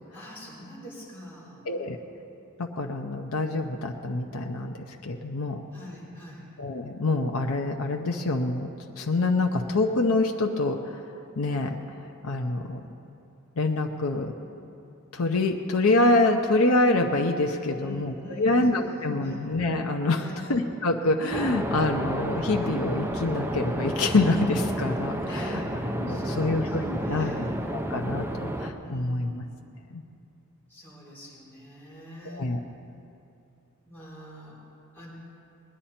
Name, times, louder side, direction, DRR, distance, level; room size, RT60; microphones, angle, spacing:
voice 1, 0.1-1.6 5.7-6.5 17.7-19.4 20.2-20.5 25.3-25.8 26.1-27.4 28.8-29.5 30.7-32.4 33.9-34.6 34.9-35.1, equal, 10° left, -8 dB, 4.0 m, -43 dB
voice 2, 1.7-2.0 2.6-4.7 5.0-5.6 6.6-11.0 11.4-11.8 12.2-12.8 13.6-14.3 15.1-20.2 20.5-25.6 26.0-27.4 27.7-29.4 29.9-30.0 32.3-32.6, left 2 dB, 70° left, 2 dB, 0.7 m, -26 dB
sound 1, 21.3-28.7, right 1 dB, 10° right, 0.7 m, -31 dB
20.5 x 10.0 x 4.3 m, 2.7 s
head